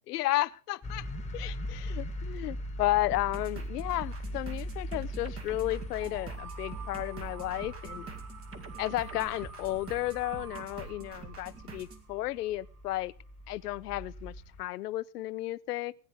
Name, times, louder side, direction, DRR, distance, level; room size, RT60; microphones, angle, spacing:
voice 1, 0.1-1.1 1.3-8.1 8.8-13.1 13.5-16.0, left 16 dB, 80° left, 0.7 m, -33 dB
sound 1, 0.8-14.6, left 1 dB, 15° left, 1.8 m, -41 dB
sound 2, 3.1-12.0, right 6 dB, 30° right, 2.3 m, -46 dB
sound 3, 6.0-12.8, right 5 dB, 70° right, 2.7 m, -49 dB
18.0 x 9.8 x 5.3 m
hypercardioid pair, 120°, 47 cm